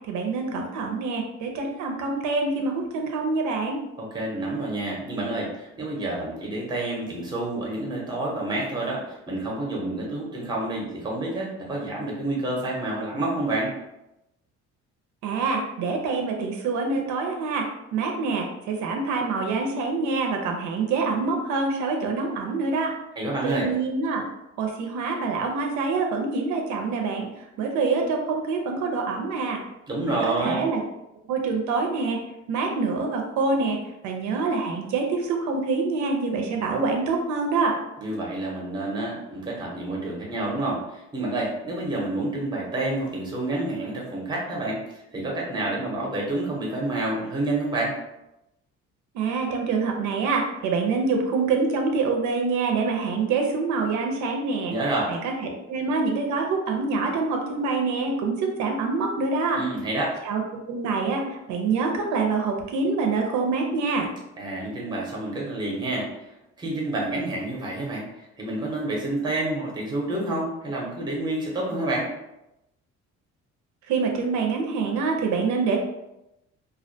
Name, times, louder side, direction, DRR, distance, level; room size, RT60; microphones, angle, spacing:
voice 1, 0.1-3.8 15.2-22.9 23.4-24.2 24.6-27.3 27.6-29.6 30.1-30.8 31.3-32.2 32.5-33.8 34.0-37.8 49.1-54.7 55.1-59.6 60.2-60.4 60.7-64.1 73.9-75.8, right 4 dB, 80° right, 2 dB, 0.5 m, -26 dB
voice 2, 4.0-13.7 23.2-23.7 29.9-30.6 38.0-44.8 45.1-47.9 54.7-55.1 59.5-60.1 64.4-66.1 66.6-72.1, right 2 dB, 15° right, -2 dB, 0.6 m, -28 dB
2.3 x 2.1 x 2.6 m, 0.90 s
cardioid pair, 140°, 29 cm